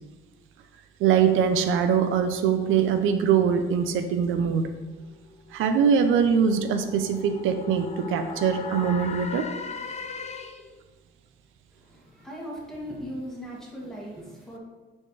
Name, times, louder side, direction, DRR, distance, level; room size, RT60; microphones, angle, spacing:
voice 1, 1.0-4.7 5.5-9.5, right 7 dB, 85° right, 8 dB, 0.6 m, -22 dB
sound 1, 4.7-10.8, left 5 dB, 35° left, 0.6 m, -39 dB
voice 2, 11.7-14.6, equal, ahead, -5 dB, 2.1 m, -38 dB
9.5 x 4.5 x 3.3 m, 1.2 s
cardioid pair, 90°, 20 cm